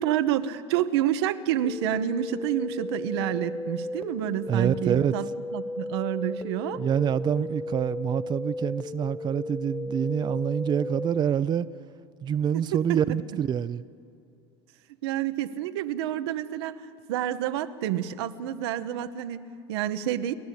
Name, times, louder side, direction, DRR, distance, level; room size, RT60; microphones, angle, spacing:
voice 1, 0.0-5.3 5.5-6.8 12.5-12.6 15.0-16.8 17.1-20.3, right 11 dB, 80° right, 10 dB, 0.9 m, -28 dB
sound 1, 1.6-11.2, left 2 dB, 5° left, 0.7 m, -35 dB
voice 2, 4.5-5.1 6.8-11.7 12.2-13.8, right 8 dB, 35° right, 14 dB, 0.5 m, -26 dB
29.5 x 11.5 x 8.4 m, 2.4 s
hypercardioid pair, 90°, 14 cm